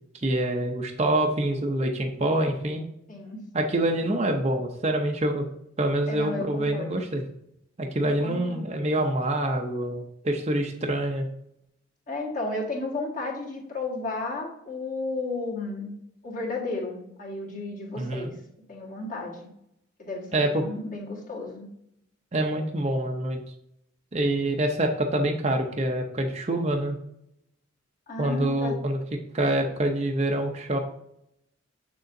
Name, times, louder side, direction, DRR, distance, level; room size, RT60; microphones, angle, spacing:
voice 1, 0.1-2.8 3.5-5.5 5.8-7.2 7.8-11.3 18.0-18.3 20.3-20.7 22.3-23.4 24.1-27.0 28.2-29.0 29.3-30.8, right 1 dB, 30° right, 2 dB, 0.6 m, -26 dB
voice 2, 3.1-3.4 6.1-7.0 8.2-8.6 12.1-15.9 16.2-18.4 18.7-19.5 20.0-21.7 28.1-28.8, left 2 dB, 40° left, -2 dB, 1.8 m, -33 dB
6.8 x 6.6 x 2.6 m, 0.77 s
head